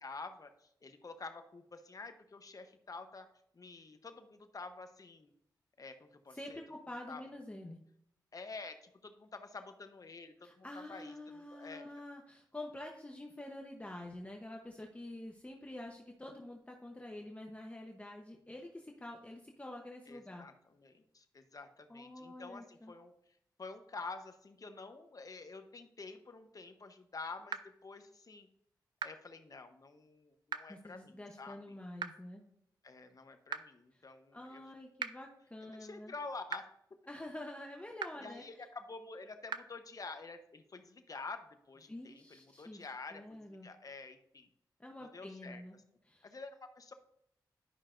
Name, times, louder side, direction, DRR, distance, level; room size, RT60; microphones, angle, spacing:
voice 1, 0.0-3.3 3.5-5.3 5.8-6.6 7.1-7.2 8.3-11.8 20.1-23.1 23.6-28.5 29.0-31.8 32.8-34.6 35.7-36.7 38.2-44.5 45.0-45.6 46.2-46.9, left 3 dB, 50° left, 7 dB, 0.9 m, -48 dB
voice 2, 6.3-7.8 10.4-20.5 21.9-22.9 30.7-32.4 34.3-36.1 37.1-38.6 41.9-42.8 43.1-43.7 44.8-45.8 46.1-46.3, left 1 dB, 15° left, 1 dB, 0.9 m, -47 dB
sound 1, 27.5-27.6 29.0-29.1 30.5-30.6 32.0-32.1 33.5-33.6 35.0-35.1 36.5-36.6 38.0-38.1 39.5-39.6, right 6 dB, 70° right, 0.4 m, -37 dB
11.0 x 5.5 x 2.6 m, 0.73 s
cardioid pair, 65°, 8 cm